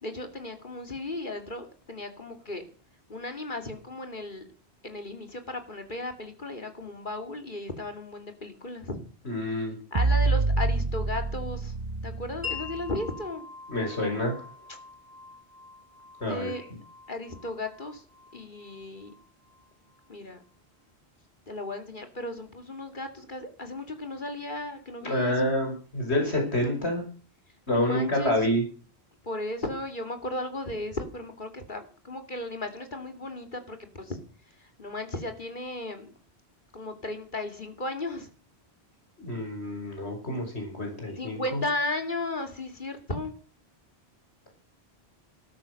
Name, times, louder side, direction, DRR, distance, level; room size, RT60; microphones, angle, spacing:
voice 1, 0.0-2.6 3.1-4.4 4.8-9.0 9.9-11.7 12.0-13.5 16.3-16.6 17.1-18.0 18.3-19.1 20.1-20.4 21.5-25.6 27.7-28.3 29.2-34.2 34.6-36.1 36.7-38.3 41.2-43.4, left 2 dB, 50° left, 6 dB, 2.8 m, -35 dB
voice 2, 9.3-9.7 13.7-14.4 16.2-16.5 25.0-27.0 27.7-28.6 39.2-41.4, left 1 dB, 85° left, 1 dB, 5.9 m, -28 dB
sound 1, 9.9-13.0, right 3 dB, 35° right, 1.0 m, -27 dB
Wind chime, 12.4-20.1, left 6 dB, 15° right, 3.4 m, -44 dB
13.0 x 13.0 x 6.5 m, 0.39 s
omnidirectional pair, 1.1 m